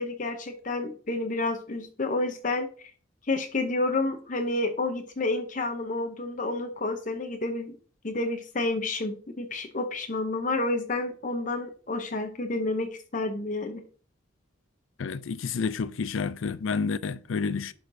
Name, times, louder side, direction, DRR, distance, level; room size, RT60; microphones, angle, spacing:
voice 1, 0.0-2.9 3.3-7.7 8.0-13.8, left 2 dB, 40° left, 0.7 m, -30 dB
voice 2, 15.0-17.7, left 5 dB, 80° left, 0.4 m, -30 dB
11.5 x 4.3 x 2.7 m
head